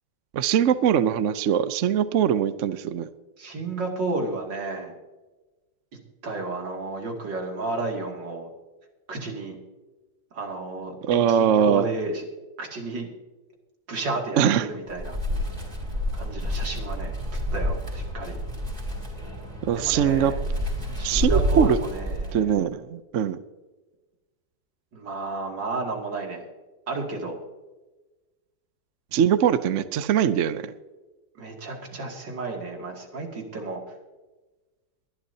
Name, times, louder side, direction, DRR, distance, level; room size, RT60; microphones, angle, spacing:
voice 1, 0.3-3.1 11.0-11.9 14.4-14.7 19.7-20.3 21.0-21.8 22.3-23.4 29.1-30.7, right 9 dB, 60° right, 13 dB, 0.8 m, -22 dB
voice 2, 3.4-4.9 6.2-8.5 9.1-9.6 10.3-12.2 12.6-13.1 13.9-15.2 16.1-17.2 17.5-18.4 19.7-20.4 20.9-22.5 24.9-26.5 26.9-27.4 31.4-33.8, right 2 dB, 80° right, 1 dB, 3.2 m, -32 dB
Wind, 14.9-22.6, equal, 20° right, 3.8 m, -29 dB
22.5 x 11.5 x 2.8 m, 1.2 s
omnidirectional pair, 1.9 m